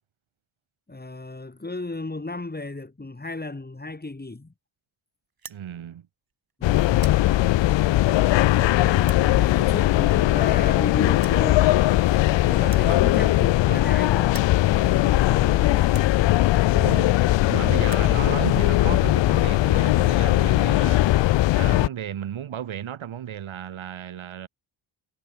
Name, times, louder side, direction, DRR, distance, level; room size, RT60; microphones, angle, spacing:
voice 1, 0.9-4.5 8.2-11.7 12.4-16.2, left 2 dB, 20° left, 6.2 m, -35 dB
sound 1, 5.3-5.6 6.3-6.5 6.8-7.2 8.0-8.1 9.0-9.3 10.3-10.4 10.6-10.7 11.2-11.4 12.6-13.9 14.2-14.6 15.3-15.4 15.9-16.1 17.0-17.1 17.4-17.5 17.7-18.1, right 6 dB, 45° right, 7.5 m, -44 dB
voice 2, 5.5-6.1 12.8-13.0 16.7-21.3 21.5-24.5, right 10 dB, 70° right, 3.8 m, -34 dB
sound 2, 6.6-21.9, left 16 dB, 65° left, 0.6 m, -19 dB
cardioid pair, 80°, 49 cm